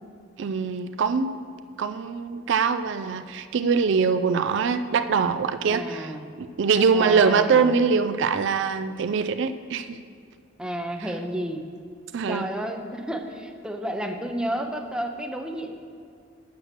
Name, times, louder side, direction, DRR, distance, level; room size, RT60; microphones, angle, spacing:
voice 1, 0.4-1.4 1.8-6.1 6.4-10.0 12.1-12.4, right 5 dB, 65° right, 9 dB, 0.4 m, -23 dB
voice 2, 5.7-6.3 6.9-7.7 10.6-11.7 12.3-15.7, equal, 5° right, 4 dB, 0.6 m, -31 dB
8.1 x 6.1 x 6.5 m, 2.3 s
head